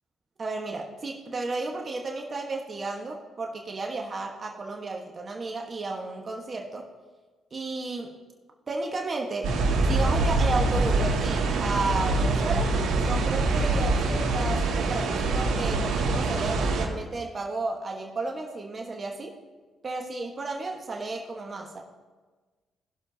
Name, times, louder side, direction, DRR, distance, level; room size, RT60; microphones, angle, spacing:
voice 1, 0.4-6.9 7.5-8.1 8.7-9.5 9.9-12.7 13.0-19.4 19.8-21.8, right 3 dB, 35° right, 1 dB, 1.4 m, -33 dB
sound 1, 9.4-16.9, right 2 dB, 85° right, 2.2 m, -24 dB
19.0 x 6.9 x 2.8 m, 1.3 s
cardioid pair, 90°, 0 cm